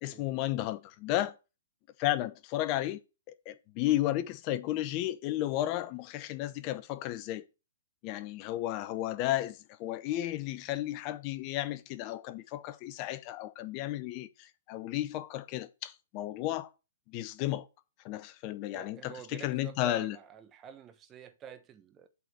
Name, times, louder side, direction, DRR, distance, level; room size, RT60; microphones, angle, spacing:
voice 1, 0.0-1.4 2.0-3.0 3.3-7.4 8.0-16.7 17.1-17.7 18.0-20.2, left 14 dB, 35° left, 0.7 m, -33 dB
voice 2, 18.7-22.1, right 8 dB, 20° right, 1.2 m, -48 dB
8.2 x 4.1 x 6.6 m
hypercardioid pair, 125°, 0 cm